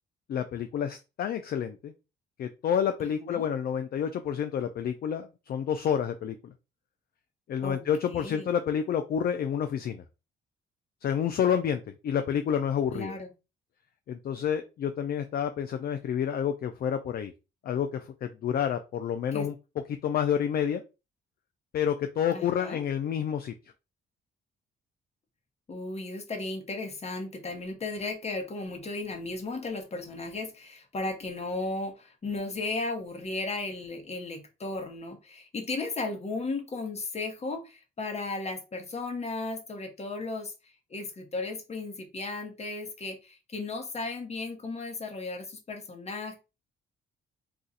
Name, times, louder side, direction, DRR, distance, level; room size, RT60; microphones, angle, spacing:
voice 1, 0.3-1.9 2.4-6.5 7.5-10.0 11.0-13.1 14.1-17.3 17.6-19.5 20.0-20.8 21.7-23.5, left 8 dB, 50° left, 8 dB, 0.4 m, -29 dB
voice 2, 7.6-8.5 12.9-13.3 19.3-19.5 22.3-22.8 25.7-40.5 40.9-46.4, left 3 dB, 35° left, 4 dB, 0.9 m, -35 dB
2.4 x 2.4 x 4.0 m, 0.28 s
cardioid pair, 90°, 20 cm